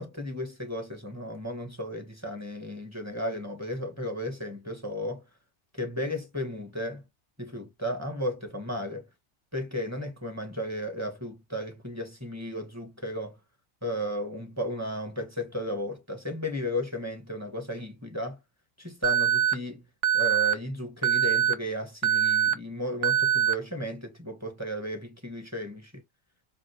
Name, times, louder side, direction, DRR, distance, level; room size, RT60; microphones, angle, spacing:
voice 1, 0.0-5.2 5.7-7.0 7.4-9.1 9.5-13.4 13.8-18.4 18.8-19.8 20.1-26.0, equal, 15° right, 1.6 m, -34 dB
Alarm, 19.0-19.5 20.0-20.5 21.0-21.5 22.0-22.5 23.0-23.5, right 10 dB, 75° right, 0.9 m, -23 dB
5.1 x 2.6 x 3.2 m
omnidirectional pair, 1.3 m